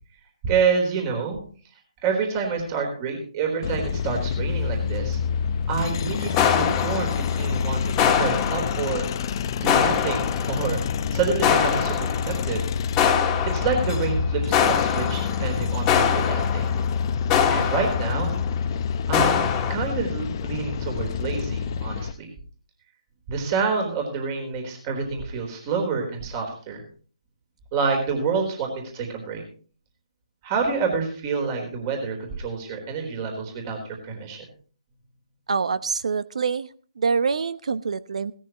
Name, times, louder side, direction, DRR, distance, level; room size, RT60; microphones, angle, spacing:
voice 1, 0.4-1.4 2.0-5.2 5.7-9.1 9.6-10.8 11.1-12.6 13.4-16.7 17.5-18.3 19.1-22.3 23.3-26.8 27.7-29.4 30.4-33.8 34.0-34.4, right 5 dB, 30° right, 2 dB, 4.0 m, -27 dB
sound 1, 3.6-22.1, left 7 dB, 40° left, 0.8 m, -27 dB
sound 2, 6.4-7.6 8.0-9.2 9.7-10.8 11.4-12.6 13.0-14.1 14.5-18.5 19.1-19.8, left 8 dB, 20° left, 1.7 m, -24 dB
voice 2, 35.5-36.7 37.0-38.3, right 5 dB, 70° right, 15 dB, 0.8 m, -25 dB
17.5 x 13.5 x 3.0 m, 0.42 s
hypercardioid pair, 150°, 4 cm